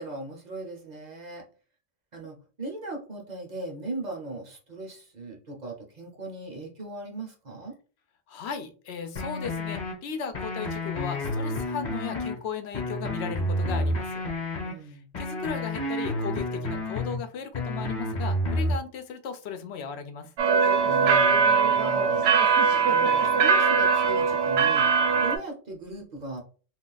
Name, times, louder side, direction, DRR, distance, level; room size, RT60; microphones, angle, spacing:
voice 1, 0.0-1.4 2.1-7.8 14.6-15.1 20.8-22.3 22.8-24.9 25.2-26.4, right 2 dB, 45° right, 1 dB, 0.8 m, -38 dB
voice 2, 8.3-14.2 14.8-20.3, left 6 dB, 80° left, 8 dB, 0.8 m, -36 dB
sound 1, 9.2-9.9 10.3-12.4 12.7-14.7 15.1-17.2 17.5-18.8, left 1 dB, 45° left, 1.0 m, -30 dB
sound 2, 20.4-25.4, right 5 dB, 85° right, 0.9 m, -21 dB
2.4 x 2.4 x 3.8 m, 0.38 s
omnidirectional pair, 1.1 m